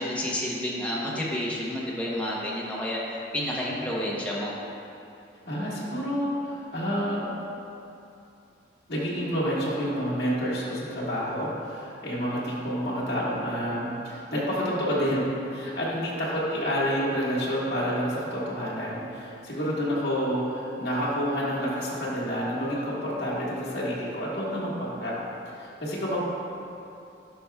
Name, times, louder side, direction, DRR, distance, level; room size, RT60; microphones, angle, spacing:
voice 1, 0.0-3.0 3.3-4.5, left 1 dB, 5° left, -6 dB, 0.9 m, -30 dB
voice 2, 5.4-7.3 8.9-25.1 25.6-26.2, equal, 65° left, -8 dB, 1.6 m, -29 dB
11.5 x 5.0 x 2.3 m, 2.7 s
head